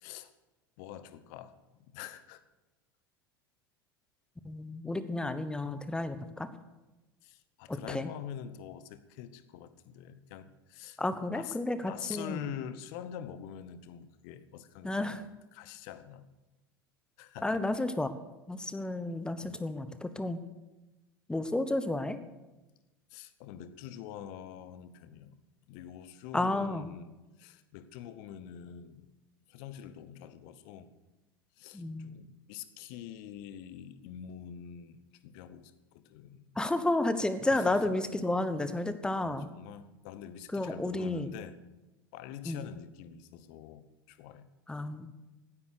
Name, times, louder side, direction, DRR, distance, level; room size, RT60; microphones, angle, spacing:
voice 1, 0.0-0.3 0.8-1.5 1.8-2.4 7.2-11.0 11.3-16.2 17.2-17.6 19.4-19.6 23.1-25.4 25.7-29.1 29.5-30.9 31.6-36.5 37.5-37.9 39.2-41.6 42.1-44.5, left 9 dB, 50° left, 14 dB, 1.0 m, -45 dB
voice 2, 4.4-6.5 7.7-8.1 11.0-12.5 14.8-15.2 17.4-18.1 18.5-20.4 21.3-22.2 26.3-26.9 31.7-32.1 36.5-39.5 40.5-41.3 42.5-42.7 44.7-45.1, left 2 dB, 5° left, 12 dB, 1.0 m, -32 dB
16.0 x 9.5 x 6.6 m, 1.1 s
figure-of-eight pair, 80°, 12 cm